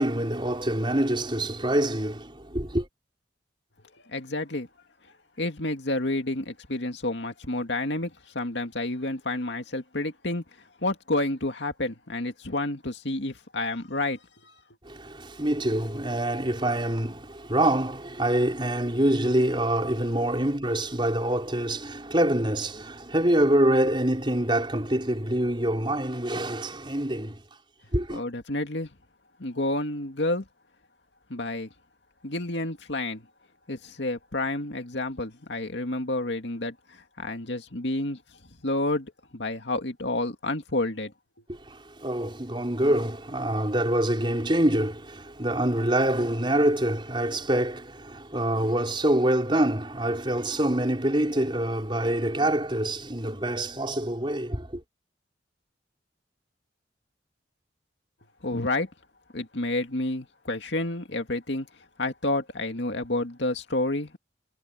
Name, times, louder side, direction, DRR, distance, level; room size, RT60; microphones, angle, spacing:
voice 1, 0.0-2.9 14.8-27.4 27.9-28.2 41.5-54.8, right 1 dB, 25° right, 4.5 m, -25 dB
voice 2, 4.0-4.7 5.4-10.4 10.8-14.5 28.1-28.9 29.4-30.4 31.3-31.7 32.2-33.3 33.7-38.2 38.6-41.1 58.4-58.9 59.3-61.7 62.0-64.2, left 2 dB, 75° left, 2.3 m, -30 dB
head